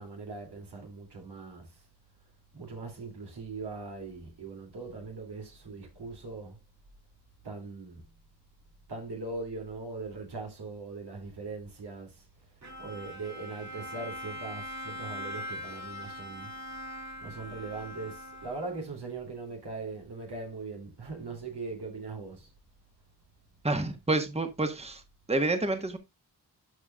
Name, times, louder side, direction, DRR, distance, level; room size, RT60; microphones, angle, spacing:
voice 1, 0.0-1.7 2.5-6.6 7.4-8.1 8.9-12.2 12.8-16.5 17.2-22.5, right 3 dB, 80° right, 2.8 m, -40 dB
Bowed string instrument, 12.6-19.0, left 1 dB, 45° right, 2.9 m, -42 dB
voice 2, 23.6-25.0 25.3-26.0, right 2 dB, 15° right, 1.3 m, -28 dB
12.5 x 4.7 x 2.3 m
cardioid pair, 45°, 40 cm